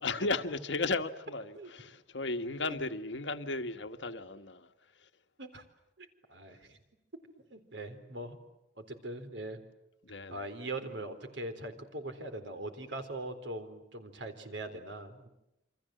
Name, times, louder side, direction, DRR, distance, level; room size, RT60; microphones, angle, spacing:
voice 1, 0.0-5.1 10.0-10.5, left 3 dB, 75° left, 1.5 m, -35 dB
voice 2, 6.0-6.8 7.5-8.4 8.8-9.6 10.3-15.3, right 2 dB, 85° right, 4.0 m, -41 dB
28.5 x 25.5 x 7.8 m
head